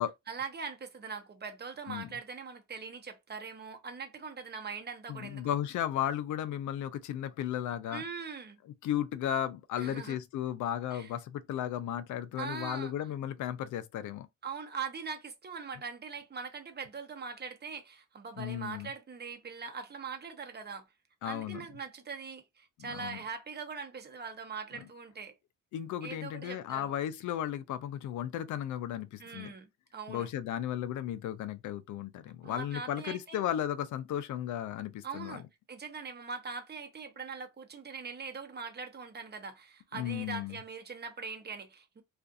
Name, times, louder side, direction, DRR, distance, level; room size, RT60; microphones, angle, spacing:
voice 1, 0.3-5.6 7.9-8.6 9.8-10.2 10.9-11.1 12.4-12.9 14.4-20.9 21.2-25.4 26.0-26.9 29.2-30.3 32.4-33.4 35.0-42.0, right 5 dB, 35° right, 0.8 m, -42 dB
voice 2, 5.1-8.0 8.8-14.3 18.4-18.9 21.2-21.6 22.8-23.2 25.7-29.5 30.1-35.4 39.9-40.5, left 11 dB, 75° left, 0.5 m, -35 dB
2.5 x 2.4 x 2.4 m
cardioid pair, 90°, 30 cm